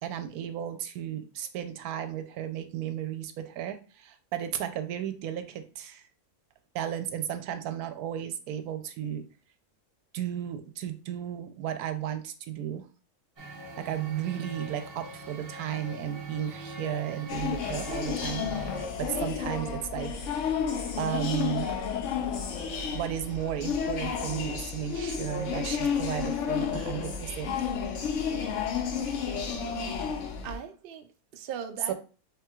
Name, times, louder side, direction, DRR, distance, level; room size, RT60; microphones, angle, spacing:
voice 1, 0.0-6.0 6.7-9.3 10.1-12.9 13.8-20.1 21.0-21.7 22.9-27.6 31.9-32.0, right 10 dB, 90° right, 1.1 m, -34 dB
Male speech man speaking, 13.4-18.8, right 2 dB, 25° right, 1.2 m, -42 dB
sound 1, 17.3-30.6, left 6 dB, 65° left, 0.9 m, -31 dB
voice 2, 28.3-28.7 30.4-31.9, right 7 dB, 70° right, 0.5 m, -39 dB
4.4 x 3.6 x 2.3 m
omnidirectional pair, 1.6 m